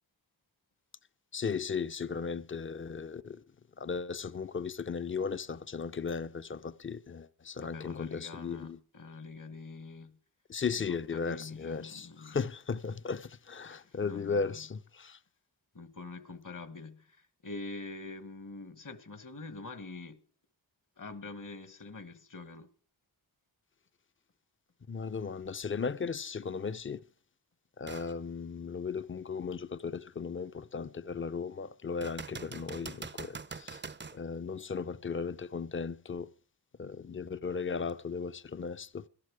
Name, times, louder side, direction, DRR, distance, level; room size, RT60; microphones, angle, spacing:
voice 1, 1.3-3.4 3.8-8.8 10.5-15.2 24.9-27.0 27.8-33.8 34.1-36.3 36.8-39.1, left 5 dB, 30° left, 0.6 m, -36 dB
voice 2, 7.6-10.2 10.9-12.4 13.6-14.6 15.7-20.2 21.0-22.7, left 3 dB, 50° left, 1.3 m, -45 dB
sound 1, 27.9-28.1 28.7-28.8 32.0-34.2 37.9-38.0, right 5 dB, 30° right, 0.6 m, -43 dB
17.5 x 12.0 x 4.8 m
wide cardioid pair, 65°, 41 cm